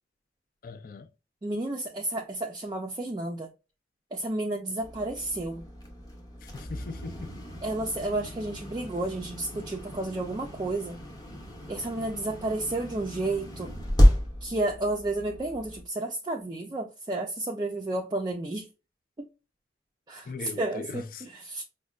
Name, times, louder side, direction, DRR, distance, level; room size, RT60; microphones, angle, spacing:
voice 1, 0.6-1.1 6.4-7.4 20.3-21.2, left 4 dB, 50° left, 0.4 m, -40 dB
voice 2, 1.4-3.5 4.1-5.7 7.6-11.0 11.7-13.8 14.4-18.7 19.2-19.3 20.1-21.6, right 2 dB, 25° right, 0.4 m, -31 dB
sound 1, 4.8-15.8, equal, 20° left, 0.8 m, -30 dB
5.0 x 2.2 x 2.3 m
head